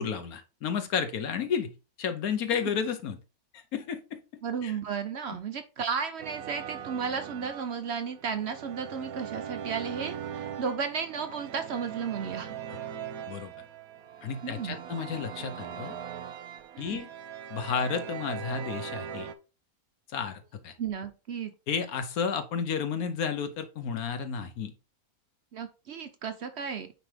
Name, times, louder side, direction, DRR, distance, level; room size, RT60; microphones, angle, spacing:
voice 1, 0.0-1.7 2.0-3.2 3.5-4.2 4.6-4.7 13.3-13.5 14.2-15.9 16.8-17.1 17.5-19.3 20.1-20.7 21.7-24.7, left 6 dB, 80° left, 8 dB, 1.3 m, -32 dB
voice 2, 4.4-12.5 14.4-14.8 16.7-17.0 20.8-21.5 25.5-26.9, right 6 dB, 60° right, 8 dB, 0.7 m, -34 dB
sound 1, 6.2-19.3, right 9 dB, 80° right, 1.1 m, -40 dB
9.2 x 3.3 x 3.3 m, 0.32 s
omnidirectional pair, 1.5 m